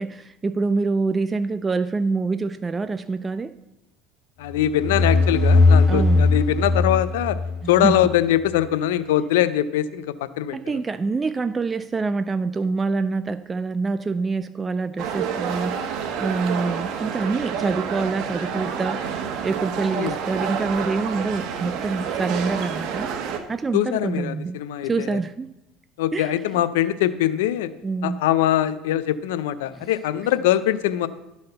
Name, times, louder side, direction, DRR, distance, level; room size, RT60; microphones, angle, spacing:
voice 1, 0.0-3.5 5.9-6.3 7.6-8.0 10.5-19.0 19.4-23.1 23.5-24.6 24.8-25.5 26.1-26.4 27.8-28.2, right 4 dB, 20° right, 12 dB, 0.3 m, -26 dB
voice 2, 4.4-7.4 7.7-10.6 19.9-20.2 23.7-25.2 26.0-27.7 28.0-31.1, left 12 dB, 90° left, 15 dB, 0.5 m, -22 dB
sound 1, 4.5-8.1, left 3 dB, 60° left, 1.4 m, -19 dB
sound 2, 15.0-23.4, right 7 dB, 60° right, 1.1 m, -29 dB
11.5 x 4.2 x 6.6 m, 0.93 s
supercardioid pair, 105°, 0 cm